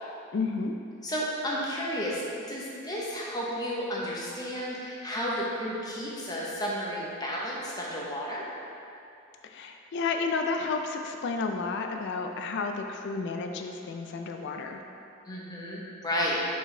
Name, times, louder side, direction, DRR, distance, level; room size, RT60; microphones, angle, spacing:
voice 1, 0.3-0.8 9.5-14.8, left 4 dB, 55° left, 4 dB, 0.3 m, -31 dB
voice 2, 1.0-2.2 2.5-8.4 15.2-16.4, equal, 20° left, -5 dB, 0.9 m, -32 dB
6.0 x 5.0 x 3.3 m, 2.6 s
head